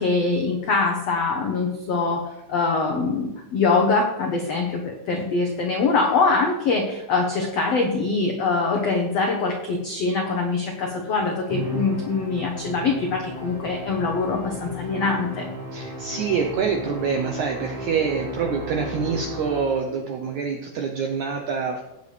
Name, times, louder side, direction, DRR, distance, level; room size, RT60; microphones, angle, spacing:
voice 1, 0.0-15.5, left 4 dB, 90° left, 2 dB, 1.4 m, -23 dB
Musical instrument, 11.5-20.1, left 1 dB, 25° right, 2.4 m, -34 dB
voice 2, 15.7-21.8, right 6 dB, 85° right, 3 dB, 1.7 m, -26 dB
17.0 x 6.8 x 3.3 m, 0.89 s
omnidirectional pair, 4.5 m